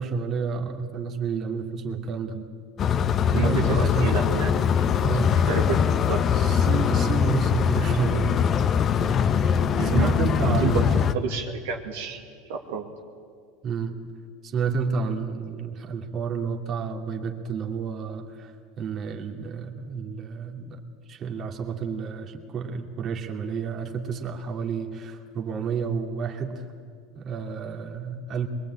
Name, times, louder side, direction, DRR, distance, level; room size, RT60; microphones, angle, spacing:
voice 1, 0.0-2.4 3.3-4.1 5.0-5.4 6.3-8.6 9.8-11.0 13.6-14.0 14.4-20.8 21.1-26.6 27.1-28.5, right 5 dB, 40° right, 3 dB, 2.6 m, -30 dB
sound 1, 2.8-11.1, left 7 dB, 40° left, 0.9 m, -22 dB
voice 2, 3.3-4.9 5.3-6.2 9.7-10.9 11.1-12.9, right 6 dB, 75° right, 1 dB, 2.3 m, -30 dB
22.5 x 22.0 x 8.8 m, 2.1 s
hypercardioid pair, 85°, 0 cm